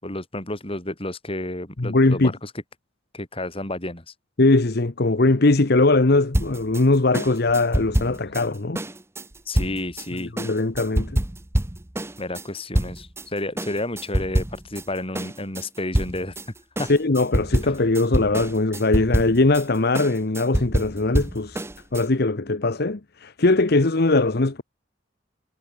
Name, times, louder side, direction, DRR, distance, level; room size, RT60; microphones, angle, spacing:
voice 1, 0.0-2.5 3.1-4.1 9.5-10.3 12.2-16.3 16.8-16.9 17.6-17.7, left 1 dB, 30° left, 4.6 m, -31 dB
voice 2, 1.8-2.3 4.4-8.8 10.2-11.2 16.9-21.6 21.9-24.6, left 2 dB, 60° left, 1.0 m, -20 dB
sound 1, 6.3-13.3 13.6-14.9 15.1-22.1, right 1 dB, 15° right, 1.0 m, -26 dB
head